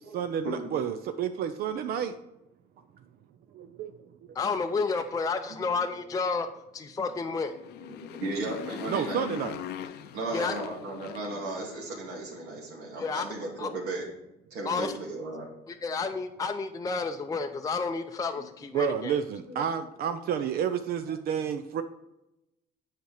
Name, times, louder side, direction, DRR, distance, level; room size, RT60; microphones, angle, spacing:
voice 1, 0.1-2.1 3.5-3.9 8.9-9.6 18.7-21.8, right 8 dB, 65° right, 8 dB, 0.6 m, -30 dB
voice 2, 4.4-6.5 6.7-7.5 10.3-10.5 13.0-13.2 13.6-13.7 14.7-14.9 15.7-19.2, left 4 dB, 20° left, 5 dB, 0.5 m, -30 dB
Motorcycle, 7.4-12.0, left 10 dB, 75° left, 0.6 m, -40 dB
voice 3, 7.8-9.2 10.1-14.1 14.5-15.5 18.4-18.5 19.5-19.7, right 2 dB, 85° right, -3 dB, 2.4 m, -36 dB
8.0 x 5.1 x 4.8 m, 0.88 s
cardioid pair, 110°, 17 cm